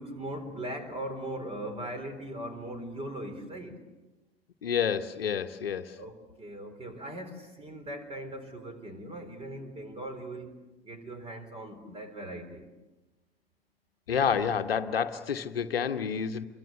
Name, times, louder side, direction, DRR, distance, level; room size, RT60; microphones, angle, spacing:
voice 1, 0.0-3.8 6.0-10.5 10.8-12.7, right 1 dB, 20° right, 9 dB, 4.1 m, -39 dB
voice 2, 4.6-5.9 14.1-16.5, left 7 dB, 70° left, 8 dB, 1.2 m, -29 dB
28.0 x 24.5 x 6.9 m, 1.1 s
figure-of-eight pair, 90°, 30 cm